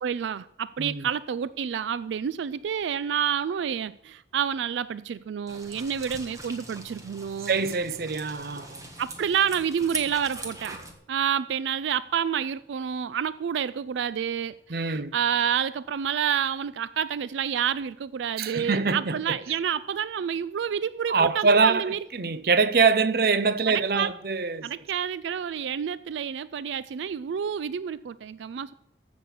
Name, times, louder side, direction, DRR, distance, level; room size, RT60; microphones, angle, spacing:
voice 1, 0.0-7.6 9.0-10.8 11.1-22.0 23.7-24.1 24.6-28.7, right 8 dB, 85° right, 0.3 m, -29 dB
sound 1, 5.5-10.9, right 2 dB, 20° right, 1.4 m, -41 dB
voice 2, 7.5-8.9 14.7-15.1 18.4-19.4 21.1-24.7, right 4 dB, 55° right, 0.6 m, -24 dB
15.0 x 6.2 x 7.2 m
head